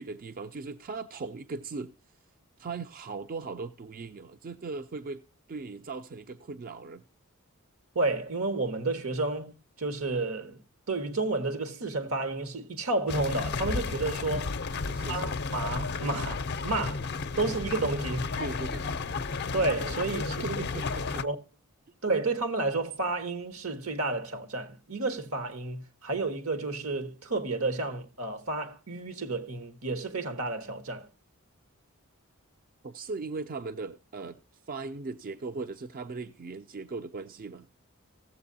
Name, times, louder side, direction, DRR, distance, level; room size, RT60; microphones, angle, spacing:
voice 1, 0.0-1.9 2.6-5.2 5.5-7.0 14.9-15.3 18.4-18.9 20.4-21.2 32.8-34.4 34.7-37.7, right 4 dB, 40° right, 0.4 m, -38 dB
voice 2, 7.9-10.6 10.9-14.5 15.0-17.0 17.4-18.4 19.5-20.6 21.0-21.4 22.0-31.1, right 3 dB, 80° right, 1.4 m, -31 dB
sound 1, 13.1-21.2, left 4 dB, 50° left, 0.5 m, -33 dB
16.0 x 7.6 x 2.7 m
head